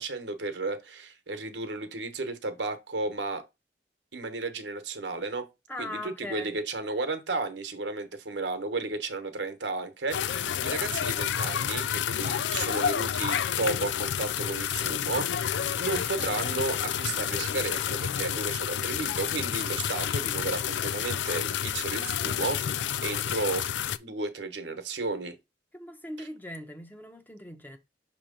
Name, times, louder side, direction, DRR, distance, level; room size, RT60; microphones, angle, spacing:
voice 1, 0.0-3.4 4.1-5.5 5.8-23.7 24.0-25.4 26.2-26.3, right 3 dB, 80° right, 1.1 m, -33 dB
voice 2, 5.7-6.5 25.7-27.8, left 1 dB, 10° left, 0.7 m, -40 dB
sound 1, 10.1-24.0, left 9 dB, 80° left, 0.4 m, -30 dB
6.2 x 3.0 x 5.1 m
head